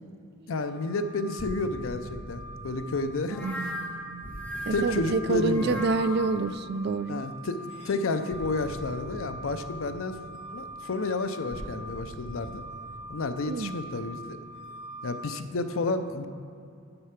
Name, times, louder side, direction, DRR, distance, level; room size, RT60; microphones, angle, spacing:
voice 1, 0.5-3.5 4.7-5.8 7.1-10.2 10.5-12.6 13.1-14.4 15.0-16.3, left 3 dB, 85° left, 10 dB, 0.6 m, -31 dB
sound 1, 0.6-15.4, right 1 dB, 30° left, 1.8 m, -44 dB
sound 2, 1.4-7.1 8.3-14.6, equal, 15° right, 1.6 m, -45 dB
sound 3, 3.3-6.4, left 1 dB, 10° left, 0.9 m, -37 dB
voice 2, 3.3-4.3 4.7-7.2 13.5-13.8, right 3 dB, 50° right, 13 dB, 0.3 m, -28 dB
7.8 x 6.6 x 5.8 m, 2.4 s
head